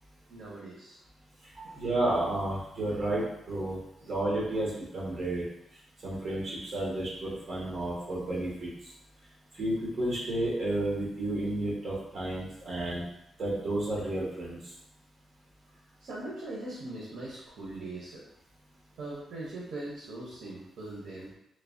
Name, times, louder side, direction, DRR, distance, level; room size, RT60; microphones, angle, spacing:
voice 1, 0.3-1.0 1.5-1.8 13.0-13.1 16.0-18.3 19.0-21.3, right 2 dB, 75° right, -5 dB, 0.7 m, -41 dB
voice 2, 1.7-5.4 6.0-8.7 9.5-13.0 13.4-14.6, right 1 dB, 35° right, -6 dB, 1.0 m, -31 dB
3.2 x 2.1 x 2.4 m, 0.82 s
wide cardioid pair, 160°, 0 cm